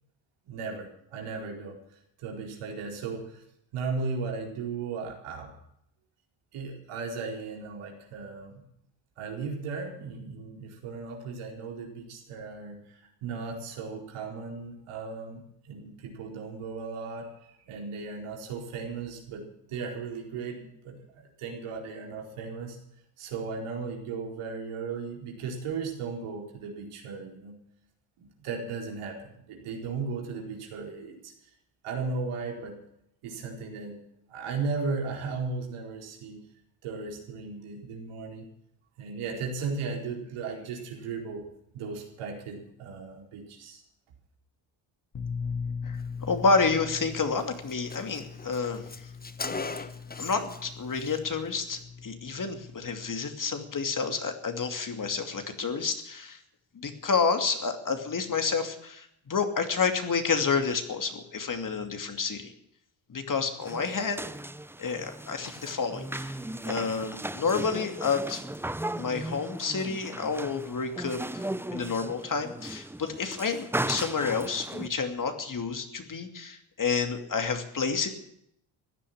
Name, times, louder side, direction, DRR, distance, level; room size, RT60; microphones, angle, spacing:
voice 1, 0.5-1.8 2.2-3.4 3.7-5.5 6.5-8.6 9.2-22.8 23.2-27.6 28.2-31.5 31.8-32.8 33.2-34.0 34.3-36.5 36.8-38.5 39.0-41.5 41.7-43.8, right 4 dB, 85° right, 1 dB, 4.4 m, -36 dB
voice 2, 45.1-56.4 56.7-62.5 63.1-64.2 64.8-66.4 66.6-68.4 69.0-71.5 71.7-78.1, left 5 dB, 40° left, 6 dB, 2.6 m, -29 dB
Car, 47.0-47.1 47.4-47.5 47.7-50.6 50.9-51.2, left 3 dB, 20° left, 1.2 m, -38 dB
sound 1, 63.6-74.9, right 1 dB, 5° right, 0.8 m, -37 dB
15.5 x 10.0 x 8.8 m, 0.74 s
supercardioid pair, 70°, 50 cm